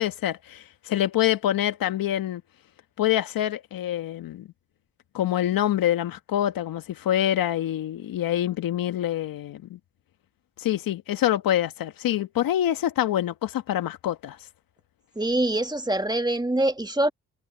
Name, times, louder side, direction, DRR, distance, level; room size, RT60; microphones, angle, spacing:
voice 1, 0.0-2.4 3.0-4.5 5.1-9.8 10.6-14.4, left 12 dB, 75° left, 1.7 m, -26 dB
voice 2, 15.2-17.1, right 1 dB, 10° right, 2.1 m, -24 dB
supercardioid pair, 45°, 34 cm